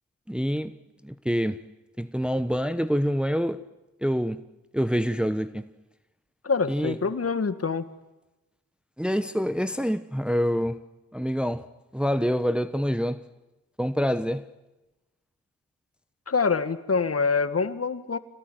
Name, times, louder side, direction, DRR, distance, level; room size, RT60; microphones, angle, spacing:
voice 1, 0.3-0.8 1.0-1.6 2.0-3.6 4.0-4.4 4.7-5.6 6.7-7.0 9.0-10.8 11.1-11.7 11.9-13.2 13.8-14.5, equal, 5° right, 1.1 m, -26 dB
voice 2, 6.4-7.9 16.3-18.2, left 5 dB, 45° left, 1.9 m, -25 dB
26.0 x 18.0 x 9.4 m
cardioid pair, 50°, 34 cm